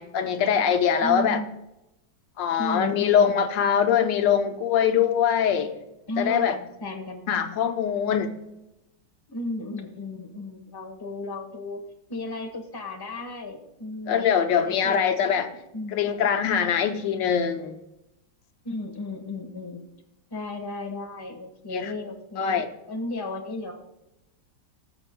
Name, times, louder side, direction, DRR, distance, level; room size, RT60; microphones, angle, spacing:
voice 1, 0.0-1.4 2.4-5.7 6.2-6.5 7.3-8.3 14.1-15.5 15.9-17.8 21.7-21.9 22.4-22.6, left 8 dB, 85° left, 6 dB, 1.5 m, -23 dB
voice 2, 1.0-1.5 2.6-3.4 6.1-7.6 9.3-11.8 12.1-16.3 18.6-19.8 20.3-22.6 22.9-23.7, left 2 dB, 15° left, 3 dB, 1.0 m, -34 dB
20.5 x 6.9 x 2.2 m, 0.91 s
omnidirectional pair, 1.9 m